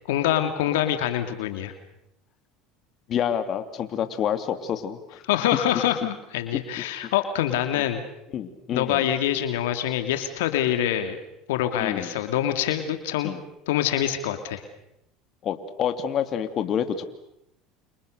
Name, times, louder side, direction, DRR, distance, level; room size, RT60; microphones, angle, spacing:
voice 1, 0.1-1.7 5.3-8.0 8.7-11.2 11.5-13.3 13.7-14.6, left 11 dB, 85° left, 7 dB, 2.6 m, -25 dB
voice 2, 3.1-5.2 7.8-7.9 8.3-9.1 11.8-12.2 13.2-13.4 15.4-17.0, left 9 dB, 50° left, 8 dB, 3.0 m, -28 dB
29.5 x 29.0 x 6.7 m, 0.82 s
supercardioid pair, 95°, 0 cm